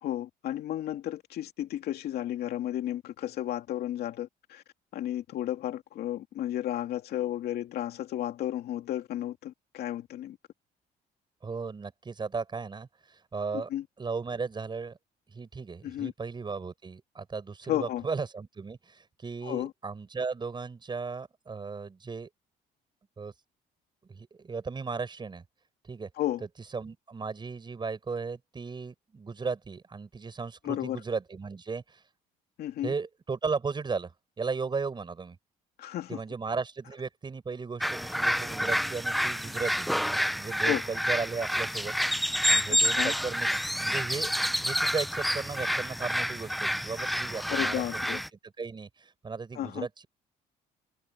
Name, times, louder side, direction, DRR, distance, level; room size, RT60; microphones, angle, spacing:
voice 1, 0.0-4.6 4.9-10.4 13.5-13.8 15.8-16.1 17.7-18.0 19.4-19.7 26.2-26.4 30.6-31.0 32.6-32.9 35.8-36.2 40.6-40.8 42.7-43.1 47.5-48.2 49.5-49.9, left 12 dB, 70° left, 2.8 m, -33 dB
voice 2, 11.4-13.7 14.0-15.0 15.3-22.3 23.2-23.3 24.1-25.4 25.8-26.1 26.7-32.0 32.8-34.1 34.4-35.4 36.1-39.9 40.4-41.9 42.5-43.5 43.8-44.3 44.6-48.2 48.6-50.1, right 4 dB, 25° right, 7.1 m, -36 dB
sound 1, 37.8-48.3, equal, ahead, 0.8 m, -28 dB
cardioid pair, 110°, 17 cm